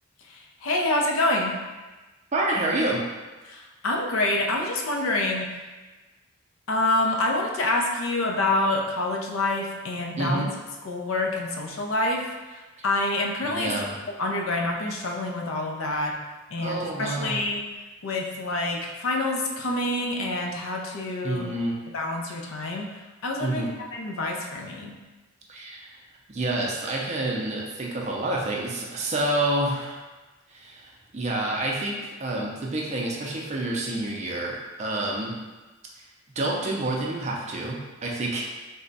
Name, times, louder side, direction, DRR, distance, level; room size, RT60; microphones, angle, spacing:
voice 1, 0.3-1.5 3.5-5.5 6.7-10.4 10.8-13.7 14.2-16.2 16.5-17.6 18.0-21.5 21.9-22.9 23.2-24.9, left 2 dB, 80° left, 1 dB, 0.5 m, -27 dB
voice 2, 2.3-3.0 10.2-10.5 13.4-14.0 16.6-17.4 21.2-21.8 23.4-23.7 25.5-25.9 26.3-30.0 30.5-35.3 36.4-38.4, right 2 dB, 35° right, -2 dB, 0.5 m, -28 dB
3.3 x 2.1 x 3.9 m, 1.2 s
head